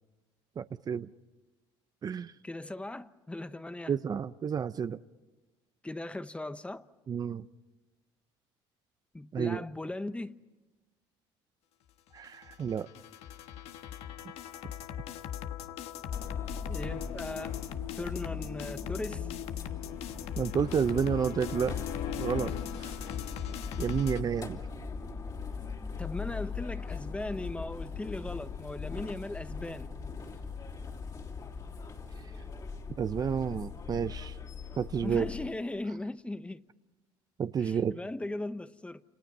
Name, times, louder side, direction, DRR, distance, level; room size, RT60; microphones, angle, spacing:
voice 1, 0.6-1.1 2.0-2.3 3.9-5.0 7.1-7.5 9.3-9.6 12.1-12.9 20.4-21.8 22.2-22.5 22.8-23.0 23.8-24.6 33.0-34.4 34.8-35.3 37.4-38.0, right 7 dB, 35° right, 0.7 m, -30 dB
voice 2, 2.4-3.9 5.8-6.9 9.1-10.4 16.7-17.6 18.0-19.3 26.0-29.9 35.0-36.6 37.6-39.0, left 2 dB, 10° left, 1.0 m, -38 dB
sound 1, 12.2-24.2, left 10 dB, 70° left, 1.4 m, -39 dB
sound 2, 16.1-35.5, left 5 dB, 35° left, 3.4 m, -40 dB
29.5 x 28.5 x 5.5 m
supercardioid pair, 95°, 11 cm